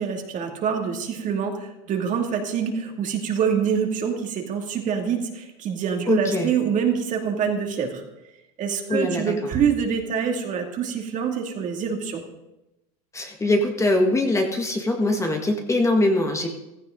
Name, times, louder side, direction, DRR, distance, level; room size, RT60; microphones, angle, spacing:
voice 1, 0.0-8.0 8.6-12.2, right 7 dB, 40° right, 2 dB, 2.5 m, -25 dB
voice 2, 6.1-6.5 8.9-9.5 13.1-16.5, left 1 dB, 15° left, 3 dB, 1.8 m, -22 dB
16.0 x 13.5 x 3.9 m, 0.94 s
supercardioid pair, 110°, 19 cm